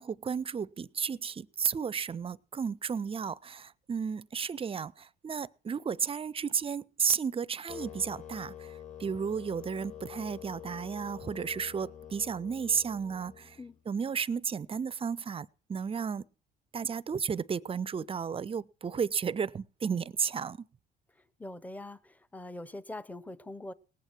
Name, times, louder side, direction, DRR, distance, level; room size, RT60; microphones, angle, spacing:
voice 1, 0.0-13.6 13.9-16.2 16.7-20.7, right 6 dB, 30° right, 0.6 m, -33 dB
sound 1, 7.7-13.8, left 10 dB, 40° left, 2.4 m, -47 dB
voice 2, 21.4-23.7, left 2 dB, 10° left, 0.8 m, -43 dB
19.0 x 8.2 x 4.5 m
supercardioid pair, 85°, 20 cm